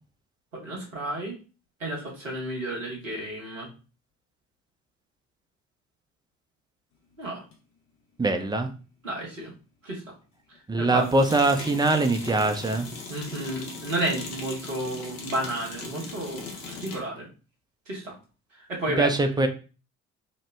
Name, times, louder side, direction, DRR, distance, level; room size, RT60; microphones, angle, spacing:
voice 1, 0.5-1.4 1.8-3.7 7.2-7.4 9.0-9.5 9.8-10.1 10.5-11.2 13.1-17.3 17.9-18.2 18.5-19.5, right 1 dB, 90° right, -3 dB, 0.9 m, -32 dB
sound 1, 7.5-7.6 11.0-17.1, left 3 dB, 60° left, 0.8 m, -39 dB
voice 2, 8.2-8.7 10.7-12.9 19.0-19.5, right 2 dB, 10° right, 5 dB, 0.5 m, -23 dB
3.0 x 2.0 x 3.2 m, 0.34 s
figure-of-eight pair, 45°, 38 cm